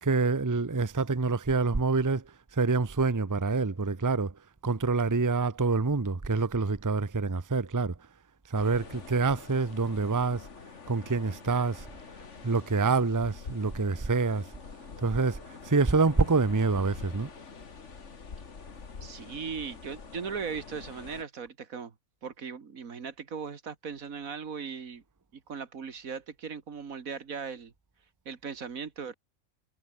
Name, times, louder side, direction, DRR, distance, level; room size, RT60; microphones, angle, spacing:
voice 1, 0.0-2.2 2.5-4.3 4.6-7.9 8.5-10.5 10.9-11.9 12.4-14.5 15.0-15.4 15.6-17.3, right 4 dB, 15° right, 0.8 m, -26 dB
sound 1, 8.5-21.2, left 5 dB, 60° left, 2.2 m, -46 dB
voice 2, 19.0-21.9 22.2-25.0 25.3-27.7 28.3-29.1, right 6 dB, 80° right, 2.2 m, -38 dB
omnidirectional pair, 1.4 m